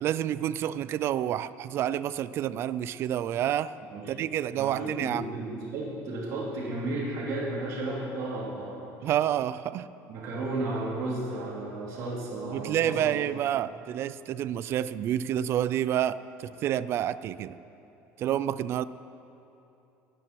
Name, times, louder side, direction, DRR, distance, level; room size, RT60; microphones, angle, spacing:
voice 1, 0.0-3.8 4.1-5.2 9.0-9.9 12.5-17.6 18.2-18.9, right 11 dB, 45° right, 16 dB, 0.4 m, -29 dB
voice 2, 4.6-8.8 10.1-13.2, right 2 dB, 60° right, -5 dB, 3.5 m, -33 dB
23.0 x 9.8 x 4.6 m, 2.9 s
cardioid pair, 145°, 6 cm